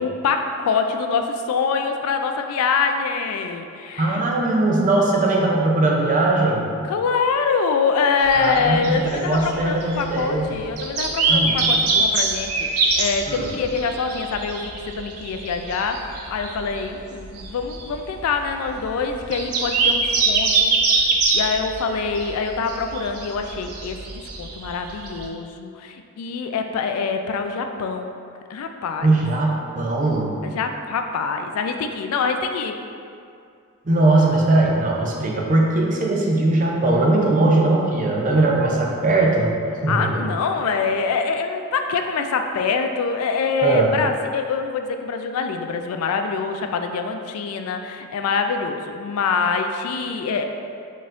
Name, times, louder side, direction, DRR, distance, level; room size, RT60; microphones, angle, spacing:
voice 1, 0.0-4.2 6.8-20.7 21.3-28.1 28.5-29.1 30.4-32.8 39.9-50.4, left 5 dB, 80° left, 6 dB, 0.3 m, -25 dB
voice 2, 4.0-6.6 8.4-10.5 11.3-11.6 13.3-13.5 29.0-30.4 33.9-39.5 39.8-40.2 43.6-43.9, right 2 dB, 35° right, -2 dB, 0.5 m, -20 dB
sound 1, 8.2-25.3, right 3 dB, 90° right, 0.5 m, -24 dB
4.0 x 4.0 x 2.5 m, 2.4 s
head